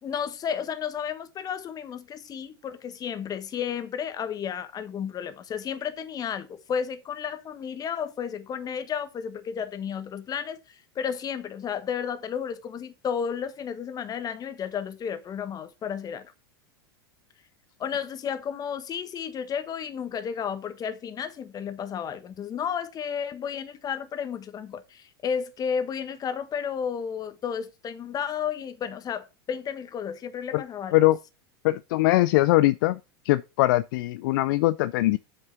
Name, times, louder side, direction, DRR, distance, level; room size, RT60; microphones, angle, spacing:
voice 1, 0.0-10.6 10.9-16.3 17.8-30.9, left 7 dB, 30° left, 1.4 m, -32 dB
voice 2, 31.6-33.0 33.3-35.2, left 18 dB, 60° left, 0.5 m, -21 dB
8.2 x 5.4 x 5.8 m
hypercardioid pair, 90°, 13 cm